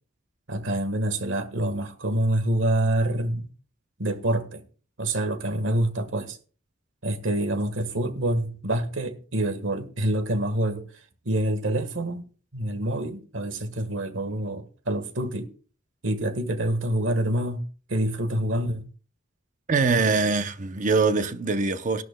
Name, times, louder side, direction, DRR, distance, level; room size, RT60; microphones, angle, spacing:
voice 1, 0.5-3.5 4.0-4.6 5.0-6.4 7.0-10.8 11.2-12.2 12.5-15.5 16.0-18.9, right 1 dB, 70° right, 1.5 m, -26 dB
voice 2, 19.7-22.0, right 4 dB, 40° right, 0.7 m, -23 dB
18.0 x 11.0 x 2.3 m
head